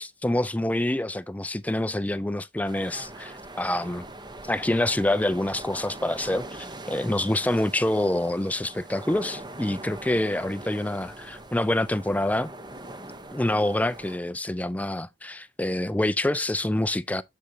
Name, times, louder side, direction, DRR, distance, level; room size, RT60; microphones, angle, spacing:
voice 1, 0.0-4.0 4.5-12.5 13.3-17.2, left 1 dB, 10° left, 0.4 m, -26 dB
sound 1, 2.6-14.2, right 1 dB, 25° right, 0.9 m, -42 dB
7.7 x 6.6 x 2.7 m
head